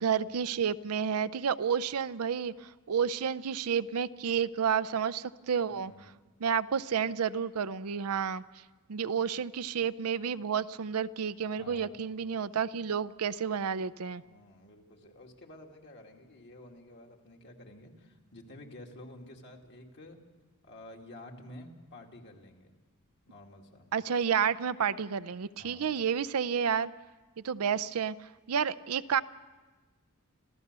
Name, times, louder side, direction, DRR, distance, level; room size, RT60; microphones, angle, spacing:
voice 1, 0.0-5.9 6.4-8.4 8.9-14.2 23.9-26.9 27.4-28.2 28.5-29.2, right 7 dB, 75° right, 15 dB, 0.5 m, -30 dB
voice 2, 5.7-6.1 11.6-12.0 14.2-20.2 20.6-22.7 23.3-23.9 25.6-25.9, left 1 dB, 55° left, 1 dB, 2.4 m, -51 dB
26.5 x 15.5 x 6.8 m, 1.3 s
head